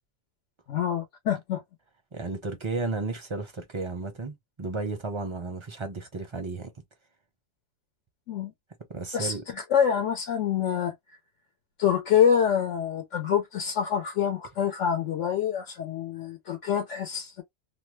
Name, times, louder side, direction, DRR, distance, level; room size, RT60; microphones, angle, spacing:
voice 1, 0.7-1.6 8.3-8.5 9.1-10.9 11.8-17.4, left 8 dB, 70° left, 1.0 m, -26 dB
voice 2, 2.1-6.7 8.9-9.4, right 3 dB, 35° right, 0.5 m, -33 dB
2.6 x 2.1 x 3.1 m
omnidirectional pair, 1.3 m